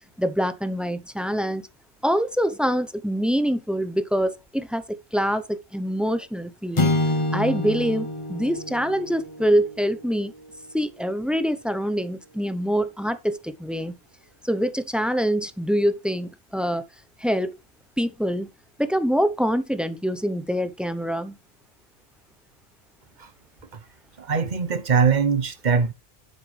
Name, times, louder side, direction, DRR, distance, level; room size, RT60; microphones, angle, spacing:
voice 1, 0.2-1.7 2.0-6.9 7.3-10.3 10.7-13.9 14.4-16.8 17.2-17.6 18.0-18.5 18.8-21.4, equal, ahead, 0.6 m, -25 dB
sound 1, 6.7-11.2, left 1 dB, 30° left, 1.0 m, -28 dB
voice 2, 24.2-25.9, right 5 dB, 45° right, 1.0 m, -21 dB
9.2 x 7.8 x 3.3 m
omnidirectional pair, 1.2 m